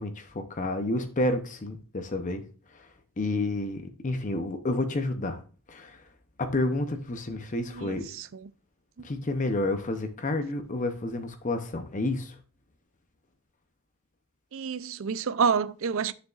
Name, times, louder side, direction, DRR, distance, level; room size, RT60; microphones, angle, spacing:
voice 1, 0.0-2.4 3.2-5.4 5.7-6.0 6.4-8.0 9.0-12.3, left 2 dB, 35° left, 0.7 m, -30 dB
voice 2, 7.7-8.5 14.5-16.1, right 6 dB, 65° right, 0.4 m, -28 dB
9.4 x 6.7 x 2.5 m
head